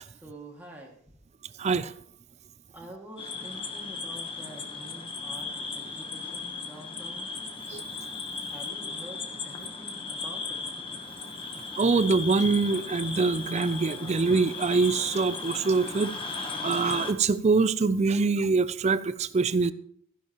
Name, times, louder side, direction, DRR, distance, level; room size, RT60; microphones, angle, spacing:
voice 1, 0.1-1.2 2.7-7.3 8.5-10.6, right 1 dB, 10° right, 2.1 m, -47 dB
voice 2, 1.6-1.9 7.7-7.8 11.8-19.7, right 4 dB, 30° right, 0.4 m, -24 dB
sound 1, 3.2-17.1, left 4 dB, 25° left, 1.0 m, -36 dB
15.0 x 10.0 x 3.0 m
head